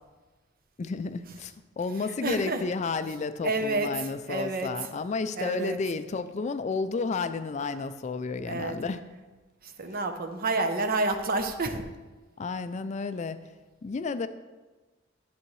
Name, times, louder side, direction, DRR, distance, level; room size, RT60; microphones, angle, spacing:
voice 1, 0.8-9.0 12.4-13.4 13.8-14.3, left 4 dB, 35° left, 11 dB, 0.3 m, -32 dB
voice 2, 2.2-2.6 3.4-4.9 5.4-5.8 8.4-8.8 9.6-11.8, right 3 dB, 50° right, 7 dB, 0.7 m, -29 dB
11.0 x 7.7 x 3.2 m, 1.2 s
head